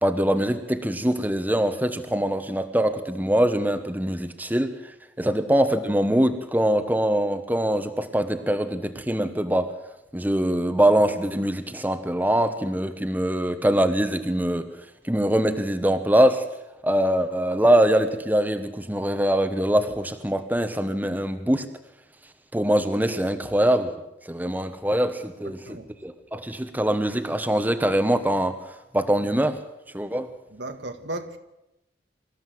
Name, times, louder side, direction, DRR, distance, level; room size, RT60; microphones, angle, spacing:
voice 1, 0.0-4.7 5.2-9.7 10.1-14.7 15.0-16.4 16.8-21.7 22.5-23.9 24.3-25.6 26.0-28.5 28.9-29.6 29.9-30.3, right 1 dB, 10° right, 1.1 m, -23 dB
voice 2, 25.4-25.9 30.5-31.4, right 1 dB, 80° right, 1.7 m, -36 dB
24.5 x 14.0 x 7.8 m
head